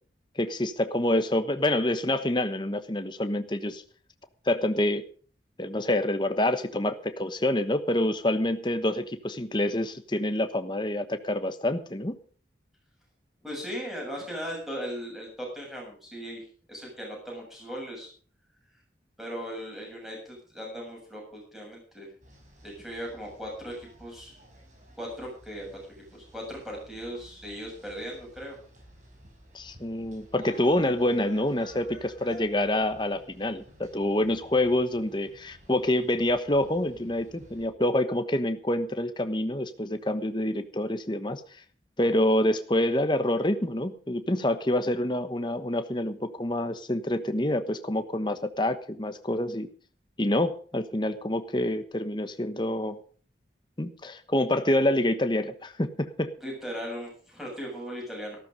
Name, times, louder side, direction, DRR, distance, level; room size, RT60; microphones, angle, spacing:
voice 1, 0.4-3.8 4.5-5.0 5.6-12.2 29.5-41.4 42.0-49.7 50.2-53.0 53.8-56.3, left 1 dB, 25° left, 9 dB, 1.1 m, -27 dB
voice 2, 13.4-18.1 19.2-22.1 22.6-24.4 25.0-28.6 56.4-58.4, equal, ahead, -2 dB, 7.4 m, -38 dB
sound 1, 22.2-37.7, right 1 dB, 45° right, 5.6 m, -53 dB
14.5 x 13.0 x 5.2 m, 0.43 s
head